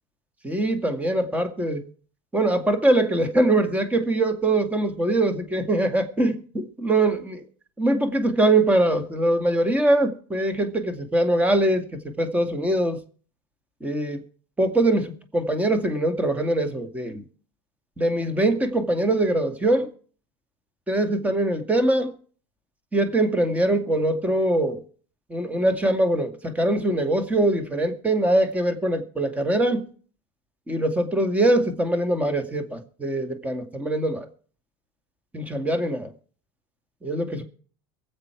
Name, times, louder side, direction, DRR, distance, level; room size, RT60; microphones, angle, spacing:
voice 1, 0.4-1.8 2.3-7.4 7.8-13.0 13.8-14.2 14.6-17.2 18.0-19.9 20.9-22.1 22.9-24.8 25.3-29.9 30.7-34.3 35.3-36.1 37.0-37.4, right 1 dB, 10° right, 2.1 m, -23 dB
23.0 x 7.6 x 4.7 m
supercardioid pair, 110°, 13 cm